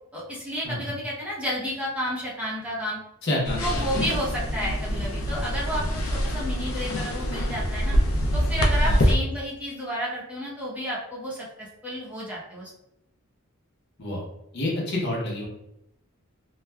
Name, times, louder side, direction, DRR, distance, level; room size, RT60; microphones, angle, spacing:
voice 1, 0.1-3.0 3.6-8.0 8.3-12.7, equal, 5° right, -7 dB, 0.7 m, -31 dB
voice 2, 3.2-4.0 8.8-9.0 14.0-14.2 14.5-15.5, left 1 dB, 55° left, -3 dB, 0.8 m, -28 dB
sound 1, 3.4-9.1, equal, 85° left, 0.5 m, -25 dB
3.1 x 2.3 x 2.2 m, 0.84 s
head